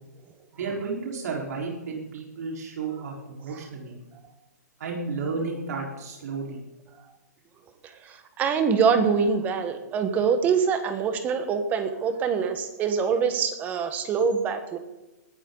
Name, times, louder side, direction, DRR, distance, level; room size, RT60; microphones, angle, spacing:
voice 1, 0.5-3.9 4.8-6.6, right 4 dB, 65° right, -1 dB, 4.3 m, -32 dB
voice 2, 7.8-14.8, right 6 dB, 15° right, 9 dB, 1.3 m, -24 dB
20.0 x 12.5 x 3.9 m, 1.0 s
hypercardioid pair, 160°, 9 cm